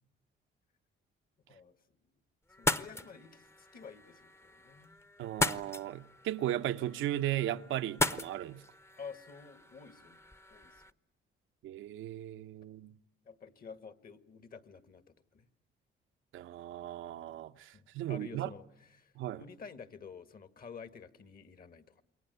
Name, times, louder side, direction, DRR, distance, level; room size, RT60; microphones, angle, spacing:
voice 1, 1.5-2.0 2.6-5.0 9.0-10.2 10.5-10.9 13.3-15.5 17.7-22.0, left 5 dB, 50° left, 2.0 m, -50 dB
sound 1, 2.5-10.9, left 2 dB, 15° left, 0.9 m, -38 dB
voice 2, 5.2-8.6 11.6-13.0 16.3-18.5 19.2-19.4, right 13 dB, 85° right, 1.0 m, -36 dB
28.5 x 22.5 x 8.2 m
cardioid pair, 90°, 20 cm